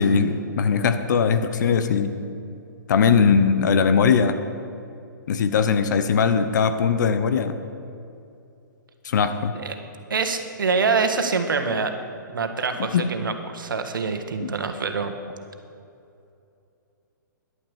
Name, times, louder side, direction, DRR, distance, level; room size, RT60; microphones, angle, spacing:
voice 1, 0.0-2.2 2.9-4.4 5.3-7.6 9.0-9.5 12.9-13.1 14.4-14.5, left 6 dB, 60° left, 9 dB, 0.8 m, -20 dB
voice 2, 10.1-11.9 12.3-15.1, right 4 dB, 80° right, 7 dB, 1.4 m, -25 dB
11.0 x 8.9 x 7.2 m, 2.6 s
hypercardioid pair, 135°, 11 cm